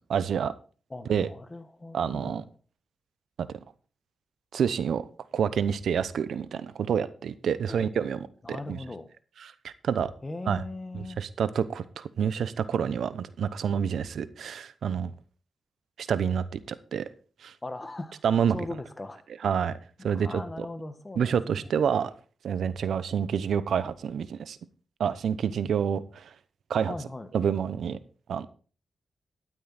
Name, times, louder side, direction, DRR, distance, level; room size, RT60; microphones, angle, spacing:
voice 1, 0.1-0.5 1.1-1.3 1.9-2.4 4.5-5.0 5.3-8.8 9.6-10.1 10.5-10.6 10.9-15.1 16.0-16.6 16.9-17.0 17.4-17.5 18.2-18.6 19.4-19.8 20.0-20.4 21.2-22.1 22.4-24.6 25.0-26.3 26.7-26.9 27.3-28.0 28.3-28.5, right 7 dB, 80° right, 15 dB, 0.8 m, -28 dB
voice 2, 0.9-2.5 7.7-7.9 8.4-9.1 10.2-11.2 17.6-18.2 18.5-19.3 20.0-21.7 26.8-27.3, left 2 dB, 25° left, 10 dB, 1.4 m, -39 dB
12.0 x 9.4 x 4.2 m, 0.38 s
cardioid pair, 80°, 0 cm